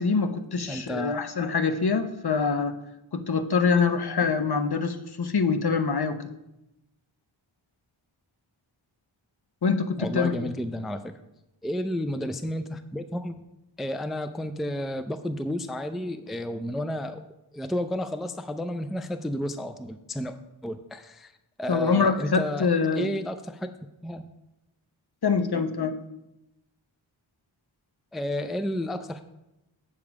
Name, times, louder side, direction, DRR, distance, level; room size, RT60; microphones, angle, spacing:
voice 1, 0.0-2.8 3.1-6.3 9.6-10.5 21.7-23.1 25.2-26.0, left 5 dB, 55° left, 8 dB, 0.7 m, -25 dB
voice 2, 0.7-1.2 10.0-11.1 11.6-13.4 13.8-17.2 17.5-20.4 20.6-21.3 21.6-23.7 24.0-24.2 28.1-29.2, left 1 dB, ahead, 9 dB, 0.4 m, -31 dB
7.4 x 7.0 x 4.7 m, 0.90 s
wide cardioid pair, 55°, 48 cm